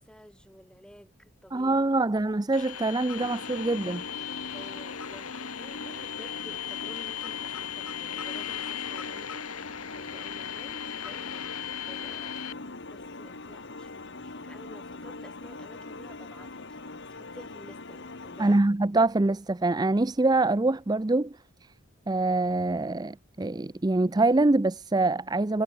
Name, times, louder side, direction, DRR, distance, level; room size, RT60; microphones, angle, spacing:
voice 1, 0.0-2.1 4.5-9.5 9.9-12.4 12.9-18.8, equal, 5° left, 7.1 m, -52 dB
voice 2, 1.5-4.0 18.4-21.7 22.1-25.6, right 2 dB, 20° right, 0.5 m, -25 dB
sound 1, 2.5-12.5, left 10 dB, 85° left, 2.3 m, -37 dB
sound 2, 3.1-18.6, left 3 dB, 55° left, 1.8 m, -42 dB
head